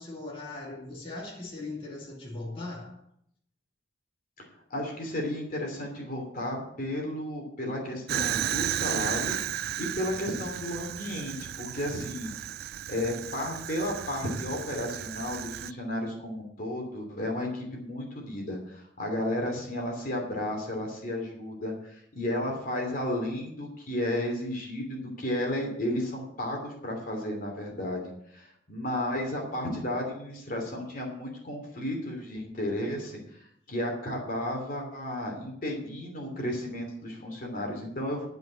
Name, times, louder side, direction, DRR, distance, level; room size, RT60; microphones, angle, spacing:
voice 1, 0.0-3.0, left 2 dB, 30° left, 2.7 m, -39 dB
voice 2, 4.7-9.4 9.8-12.3 12.9-28.0 28.3-38.3, left 1 dB, 50° left, 2.8 m, -33 dB
Fire, 8.1-15.7, right 11 dB, 60° right, 0.3 m, -34 dB
12.0 x 5.4 x 8.5 m
head